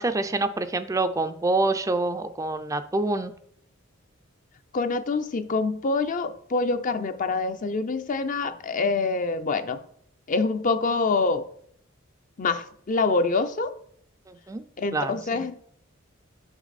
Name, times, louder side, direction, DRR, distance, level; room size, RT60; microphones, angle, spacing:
voice 1, 0.0-3.3 14.3-14.6 14.9-15.4, right 2 dB, 15° right, 0.4 m, -26 dB
voice 2, 4.7-9.8 10.3-11.4 12.4-13.7 14.8-15.5, left 3 dB, 40° left, 0.5 m, -25 dB
6.0 x 5.8 x 4.1 m
head